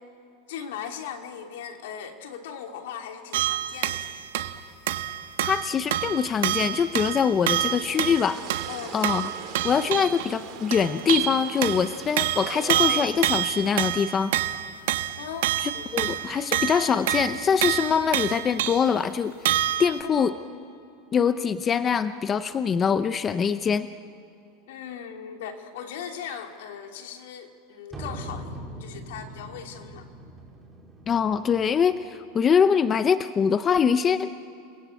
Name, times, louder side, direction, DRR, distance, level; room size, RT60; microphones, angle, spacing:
voice 1, 0.5-4.2 8.7-9.0 15.2-15.5 15.7-15.9 20.0-20.2 24.7-30.1, left 8 dB, 75° left, 4 dB, 2.9 m, -38 dB
sound 1, 3.3-4.6 4.9-10.3 10.7-19.0 19.5-20.0, right 13 dB, 75° right, 1.3 m, -27 dB
voice 2, 5.4-8.4 8.9-9.3 9.6-14.3 15.6-19.3 19.8-20.3 21.1-23.9 31.1-34.3, left 7 dB, 20° left, 12 dB, 0.6 m, -23 dB
sound 2, 7.4-13.0, right 10 dB, 40° right, 2.6 m, -41 dB
sound 3, 27.9-31.9, right 1 dB, 5° right, 4.2 m, -41 dB
29.0 x 21.0 x 8.4 m, 2.6 s
supercardioid pair, 160°, 0 cm